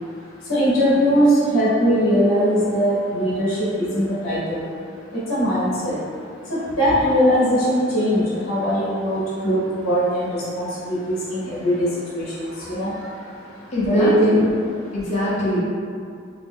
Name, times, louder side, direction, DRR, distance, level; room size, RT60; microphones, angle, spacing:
voice 1, 0.5-4.6 5.3-5.9 6.5-11.9 12.2-12.3 12.7-12.9 13.9-14.4, equal, 85° left, -9 dB, 0.8 m, -20 dB
voice 2, 13.7-14.5 14.9-15.6, left 1 dB, 35° left, -9 dB, 0.6 m, -22 dB
2.6 x 2.1 x 3.4 m, 2.3 s
head